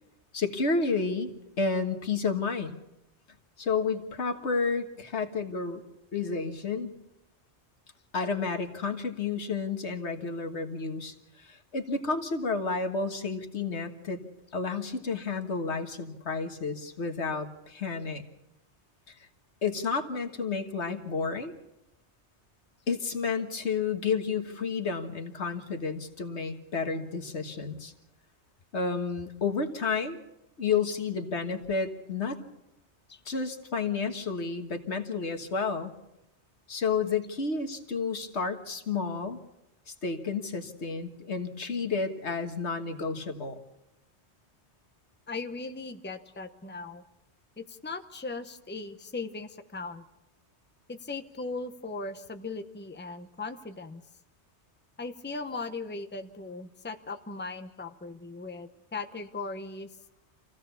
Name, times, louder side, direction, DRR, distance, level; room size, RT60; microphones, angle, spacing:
voice 1, 0.3-1.3 1.6-2.8 3.6-5.8 6.1-6.9 8.1-14.2 14.5-18.2 19.6-21.5 22.9-27.9 28.7-30.2 30.6-32.4 33.2-35.9 36.7-39.4 39.9-43.6, left 4 dB, 85° left, 5 dB, 1.8 m, -31 dB
voice 2, 45.3-47.0 47.6-50.0 50.9-54.0 55.0-59.9, left 3 dB, 10° left, 8 dB, 0.9 m, -38 dB
26.5 x 16.0 x 7.0 m, 0.92 s
omnidirectional pair, 1.1 m